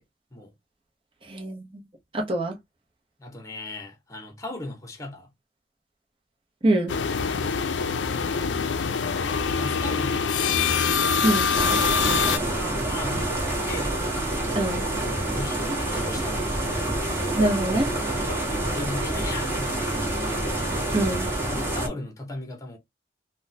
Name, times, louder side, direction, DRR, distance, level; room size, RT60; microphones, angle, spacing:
voice 1, 1.2-1.8 2.1-2.6 6.6-6.9 11.2-11.5 14.5-14.8 17.3-17.9 20.9-21.3, right 1 dB, 30° right, 0.9 m, -24 dB
voice 2, 3.2-5.3 7.4-7.7 9.1-10.6 11.7-13.9 14.9-16.5 18.7-20.4 21.5-22.8, left 2 dB, 20° left, 0.8 m, -38 dB
sound 1, 6.9-12.4, left 5 dB, 85° left, 0.5 m, -24 dB
sound 2, 11.5-21.9, right 1 dB, 15° right, 1.2 m, -27 dB
3.5 x 2.2 x 2.7 m
head